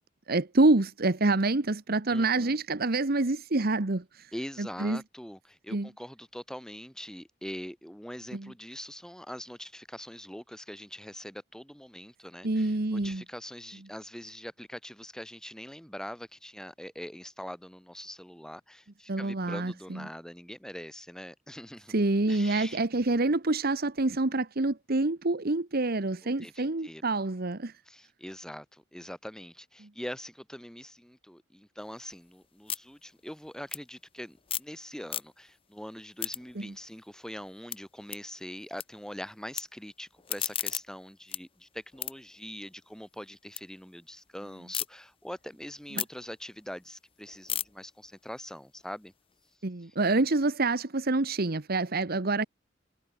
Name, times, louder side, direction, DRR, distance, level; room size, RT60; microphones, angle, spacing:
voice 1, 0.3-4.3 4.6-5.0 5.7-5.9 8.3-8.5 12.4-13.2 19.1-20.1 21.9-27.7 36.6-36.7 49.6-52.4, right 2 dB, 55° right, 1.2 m, -27 dB
voice 2, 2.1-2.5 4.3-21.9 22.3-22.8 26.2-27.0 27.9-49.1, equal, 5° left, 4.1 m, -43 dB
sound 1, 31.8-34.8 35.0-35.6 36.0-38.8 39.1-39.6 40.0-43.6 44.0-44.9 45.3-49.5, left 10 dB, 30° left, 0.9 m, -38 dB
head